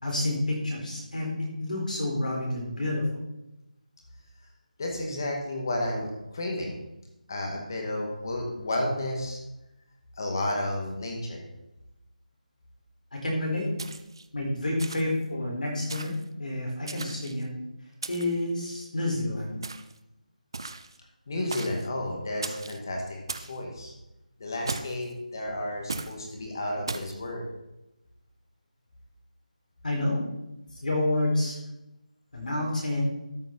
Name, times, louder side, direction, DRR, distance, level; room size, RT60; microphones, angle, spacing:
voice 1, 0.0-3.1 13.1-13.7 14.3-17.5 18.1-19.6 29.8-30.2 30.8-31.6 32.3-33.0, left 1 dB, 70° left, -1 dB, 4.1 m, -29 dB
voice 2, 4.8-6.8 7.3-9.4 10.2-11.4 21.3-23.9 24.4-27.4, left 1 dB, 30° left, 0 dB, 2.1 m, -32 dB
sound 1, 13.8-14.3 14.8-15.2 15.9-16.2 16.9-17.4 18.0-18.4 19.6-20.0 20.5-21.0 21.5-21.9 22.4-22.8 23.3-23.6 24.7-25.1 25.9-26.2 26.9-27.2, right 3 dB, 30° right, 0.5 m, -37 dB
13.0 x 5.8 x 5.6 m, 0.94 s
figure-of-eight pair, 175°, 5 cm